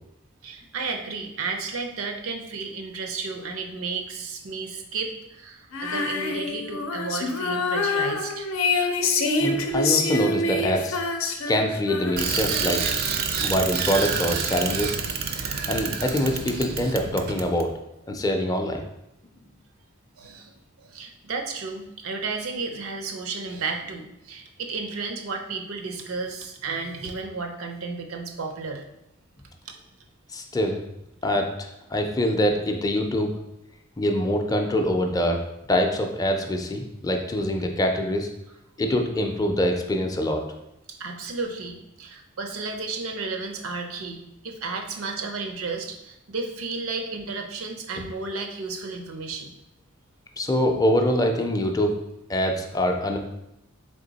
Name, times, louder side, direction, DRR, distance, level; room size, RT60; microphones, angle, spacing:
voice 1, 0.4-8.5 20.2-28.8 41.0-49.5, right 4 dB, 90° right, 4 dB, 0.6 m, -33 dB
Female singing, 5.7-13.1, left 3 dB, 80° left, 0.5 m, -26 dB
voice 2, 9.4-11.0 11.5-12.9 13.4-15.0 15.7-17.7 18.1-18.8 30.3-30.8 31.2-33.3 34.0-35.4 35.7-38.3 38.8-40.4 48.0-48.1 50.4-51.9 52.3-53.2, left 1 dB, 20° left, 3 dB, 0.4 m, -24 dB
Bicycle, 12.2-17.7, right 6 dB, 45° right, 0.4 m, -28 dB
3.6 x 3.4 x 3.9 m, 0.86 s
head